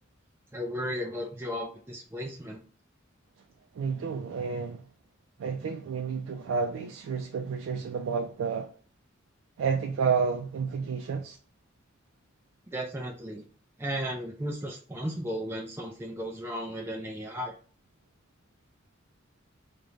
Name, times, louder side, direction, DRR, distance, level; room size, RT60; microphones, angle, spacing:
voice 1, 0.5-2.6 12.7-13.4 13.8-17.5, equal, 10° right, 0.4 m, -35 dB
voice 2, 3.7-4.9 5.4-8.7 9.6-11.4, right 5 dB, 85° right, 0.3 m, -30 dB
2.5 x 2.1 x 3.1 m
head